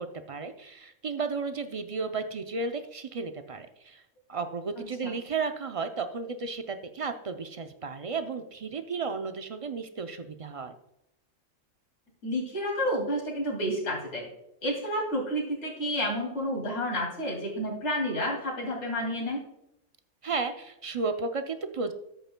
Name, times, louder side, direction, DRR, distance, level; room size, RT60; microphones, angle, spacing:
voice 1, 0.0-4.0 4.3-10.7 20.2-21.9, right 4 dB, 55° right, 7 dB, 0.4 m, -33 dB
voice 2, 4.8-5.1 12.2-14.3 14.6-19.4, equal, 60° left, -1 dB, 2.8 m, -30 dB
13.0 x 8.0 x 2.2 m, 0.82 s
omnidirectional pair, 1.3 m